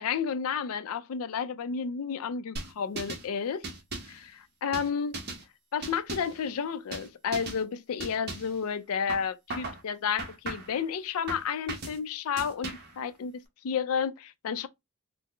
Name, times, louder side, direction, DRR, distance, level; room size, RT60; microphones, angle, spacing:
voice 1, 0.0-3.6 4.1-5.2 5.7-12.7 13.0-14.7, left 6 dB, 75° left, 0.4 m, -31 dB
sound 1, 2.6-3.3 3.6-4.2 4.7-5.4 5.8-6.4 6.9-7.1 7.3-7.6 8.0-8.6 9.1-9.8 10.2-10.8 11.3-12.0 12.4-13.0, right 2 dB, 45° right, 0.8 m, -38 dB
3.8 x 2.0 x 3.1 m
head